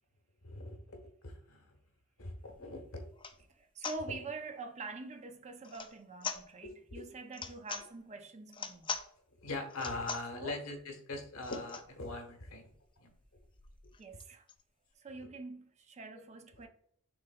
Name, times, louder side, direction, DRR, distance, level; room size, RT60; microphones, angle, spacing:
voice 1, 0.4-0.8 1.2-1.6 2.2-3.0 6.6-7.0 9.4-12.7 13.0-13.1 16.6-16.7, left 2 dB, 70° left, 1.1 m, -41 dB
sound 1, 2.5-2.6 3.1-3.4 3.8-4.0 5.6-5.9 6.2-6.4 7.3-7.9 8.5-9.1 9.7-10.3 11.4-11.9 12.4-12.5 12.7-12.8 13.1-14.6, left 5 dB, 25° left, 0.4 m, -42 dB
voice 2, 3.5-8.9 10.3-10.6 14.0-14.5 15.0-16.7, right 3 dB, 30° right, 0.5 m, -45 dB
6.3 x 3.3 x 2.3 m
head